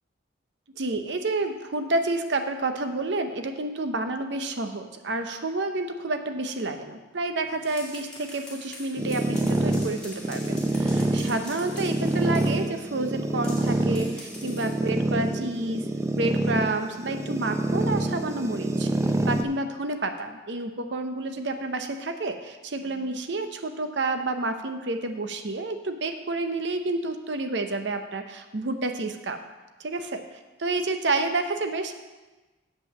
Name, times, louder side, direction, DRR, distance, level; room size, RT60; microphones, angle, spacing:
voice 1, 0.8-18.9 19.3-29.4 29.8-30.2 30.6-31.9, right 2 dB, 60° right, 7 dB, 0.7 m, -29 dB
sound 1, 7.4-12.7 13.4-14.8, left 1 dB, 5° left, 1.9 m, -44 dB
sound 2, 9.0-19.4, right 1 dB, 15° right, 0.4 m, -27 dB
7.6 x 5.7 x 6.7 m, 1.2 s
head